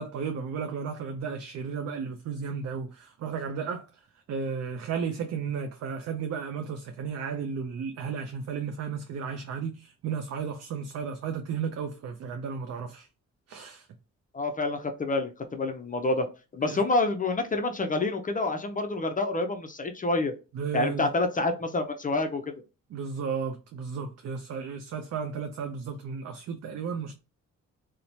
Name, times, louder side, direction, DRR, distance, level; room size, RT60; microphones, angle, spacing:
voice 1, 0.0-4.0 4.3-13.1 13.5-13.9 16.6-16.8 20.5-21.1 22.9-27.1, right 6 dB, 55° right, 0.4 m, -34 dB
voice 2, 14.3-16.3 16.5-20.3 20.7-22.5, left 2 dB, 25° left, 0.4 m, -28 dB
2.9 x 2.1 x 2.6 m
cardioid pair, 75°, 31 cm